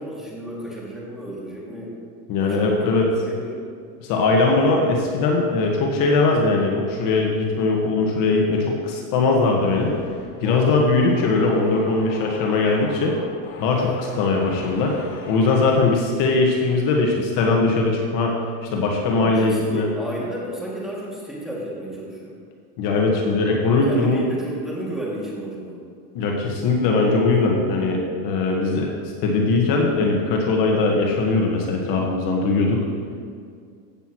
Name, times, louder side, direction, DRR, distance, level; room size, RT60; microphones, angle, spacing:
voice 1, 0.0-1.9 2.4-2.9 3.2-3.7 10.4-10.8 13.7-14.0 19.1-22.3 23.9-25.8, right 1 dB, ahead, -6 dB, 2.3 m, -33 dB
voice 2, 2.3-3.1 4.0-9.9 10.4-13.2 13.6-15.0 15.3-18.3 18.6-19.9 22.8-24.2 26.1-28.9 29.2-32.8, left 3 dB, 45° left, 0 dB, 1.5 m, -20 dB
sound 1, 9.6-16.0, left 4 dB, 65° left, 2.1 m, -41 dB
15.5 x 8.0 x 3.1 m, 2.2 s
supercardioid pair, 140°, 44 cm